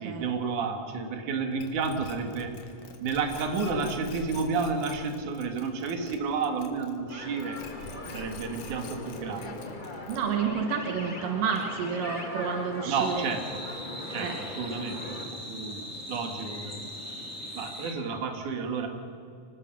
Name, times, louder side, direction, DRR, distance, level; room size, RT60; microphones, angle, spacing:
voice 1, 0.0-2.6 3.0-7.6 8.1-9.7 12.9-13.6 14.1-16.9 17.5-18.9, right 4 dB, 70° right, 5 dB, 3.3 m, -31 dB
sound 1, 1.6-7.1 7.4-10.4, left 3 dB, 75° left, 3.3 m, -45 dB
sound 2, 7.1-15.2, left 2 dB, 25° left, 1.1 m, -40 dB
voice 2, 10.1-13.3 14.2-14.4, right 6 dB, 85° right, 3 dB, 2.9 m, -30 dB
sound 3, 12.9-17.9, equal, 5° left, 2.7 m, -40 dB
25.5 x 19.0 x 6.1 m, 2.6 s
omnidirectional pair, 3.7 m